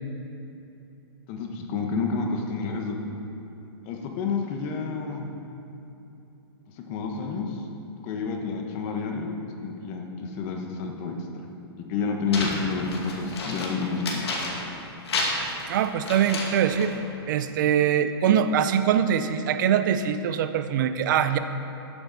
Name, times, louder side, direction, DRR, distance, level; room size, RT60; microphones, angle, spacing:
voice 1, 1.3-3.0 3.8-5.3 6.9-7.6 8.0-11.5 11.9-14.3, left 4 dB, 35° left, 2 dB, 1.3 m, -29 dB
sound 1, 12.3-14.8 15.1-17.0, left 2 dB, 75° left, 2.3 m, -31 dB
voice 2, 15.7-16.9 17.3-21.4, right 9 dB, 50° right, 10 dB, 0.7 m, -23 dB
12.0 x 9.1 x 4.2 m, 3.0 s
hypercardioid pair, 150°, 14 cm